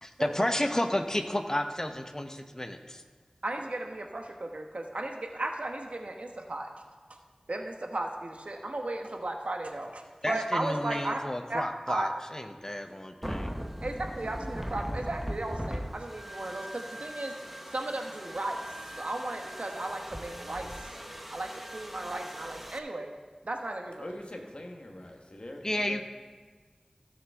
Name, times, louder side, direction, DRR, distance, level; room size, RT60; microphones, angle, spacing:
voice 1, 0.0-3.0 10.2-13.5 25.6-26.0, left 1 dB, 25° left, 6 dB, 0.9 m, -31 dB
voice 2, 3.4-6.7 7.5-11.2 11.5-12.1 13.8-17.3 17.7-18.6 19.0-20.9 21.3-23.1 23.4-24.1, right 2 dB, 90° right, 3 dB, 1.0 m, -35 dB
sound 1, 13.2-22.8, equal, 5° right, 0.9 m, -40 dB
voice 3, 20.3-20.8 24.0-26.0, left 1 dB, 60° left, 1 dB, 1.3 m, -44 dB
16.0 x 6.8 x 3.6 m, 1.5 s
wide cardioid pair, 45°, 2 cm